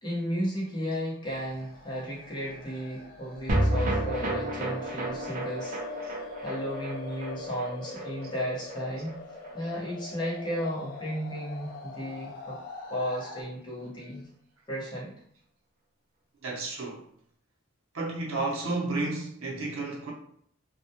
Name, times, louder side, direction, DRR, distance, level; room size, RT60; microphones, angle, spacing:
voice 1, 0.0-9.2 9.5-12.6 12.9-14.3 14.7-15.1, equal, 20° left, 0.7 m, -34 dB
sound 1, 1.2-13.4, left 3 dB, 45° left, 0.3 m, -43 dB
sound 2, 3.5-9.9 10.2-10.3 10.6-10.7, right 1 dB, 40° right, 0.4 m, -32 dB
voice 2, 16.4-17.0 17.9-20.1, right 2 dB, 80° right, 0.7 m, -32 dB
2.2 x 2.1 x 2.7 m
head